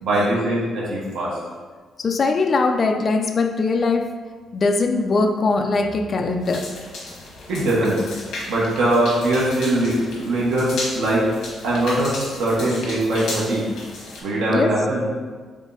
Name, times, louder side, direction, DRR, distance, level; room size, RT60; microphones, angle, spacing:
voice 1, 0.0-1.4 7.5-8.0 8.5-11.3 11.6-13.7 14.2-15.0, right 1 dB, 90° right, -6 dB, 1.2 m, -21 dB
voice 2, 2.0-4.1 4.5-6.7 14.5-14.7, left 3 dB, 35° left, 6 dB, 0.3 m, -21 dB
sound 1, 6.4-14.2, left 2 dB, 65° left, 1.2 m, -35 dB
3.7 x 3.5 x 3.9 m, 1.5 s
cardioid pair, 150°, 0 cm